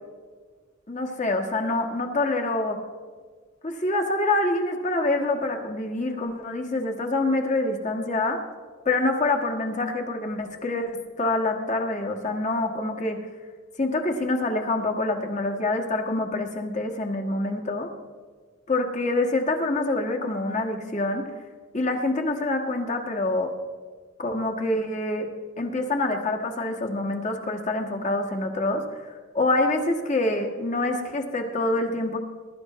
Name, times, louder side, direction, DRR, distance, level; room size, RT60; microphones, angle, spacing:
voice 1, 0.9-2.8 3.6-8.4 8.8-13.2 13.8-17.9 18.7-21.3 21.7-23.5 24.2-25.3 25.6-32.2, left 2 dB, 35° left, 3 dB, 1.6 m, -26 dB
21.5 x 12.5 x 3.1 m, 1.5 s
head